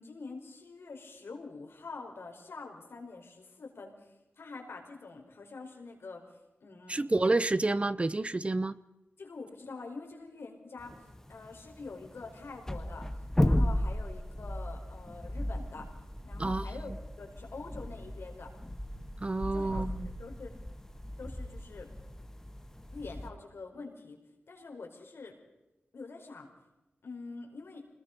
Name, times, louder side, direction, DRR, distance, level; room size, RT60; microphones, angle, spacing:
voice 1, 0.0-4.1 4.4-6.2 6.6-7.1 9.2-13.1 13.4-15.9 16.2-18.5 19.5-19.8 20.2-20.5 21.2-21.9 22.9-24.2 24.5-25.4 25.9-26.5 27.0-27.9, left 3 dB, 75° left, 2 dB, 4.8 m, -45 dB
voice 2, 6.9-8.7 16.4-16.6 19.2-20.1, right 2 dB, 30° right, 17 dB, 0.7 m, -29 dB
sound 1, 10.8-23.3, left 1 dB, 10° left, 1.6 m, -35 dB
26.5 x 20.5 x 5.3 m, 0.99 s
wide cardioid pair, 80°, 4 cm